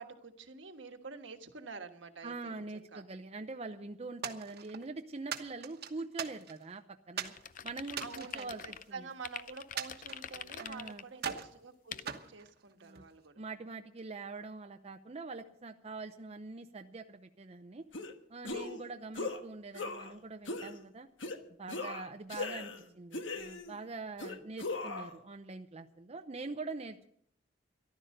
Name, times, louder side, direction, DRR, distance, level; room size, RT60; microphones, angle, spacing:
voice 1, 0.0-3.0 8.0-13.4 22.6-22.9, right 4 dB, 75° right, 6 dB, 1.4 m, -48 dB
voice 2, 2.2-7.3 7.6-8.6 8.9-9.1 10.6-11.0 12.8-13.0 13.4-17.8 18.3-21.1 21.6-27.1, right 3 dB, 35° right, 5 dB, 0.7 m, -44 dB
sound 1, 4.2-4.9 5.3-6.7 7.2-7.4 7.9-9.2 9.8-10.8 11.2-11.6 12.1-13.1, right 7 dB, 60° right, 1.2 m, -41 dB
sound 2, 7.3-8.8 9.2-11.0 11.9-12.1, left 8 dB, 45° left, 0.5 m, -45 dB
sound 3, 17.9-18.1 18.4-18.8 19.1-19.4 19.7-20.1 20.5-20.7 21.2-21.4 21.7-22.8 23.1-23.8 24.2-25.1, left 3 dB, 80° left, 1.3 m, -39 dB
14.0 x 12.0 x 6.6 m, 0.68 s
head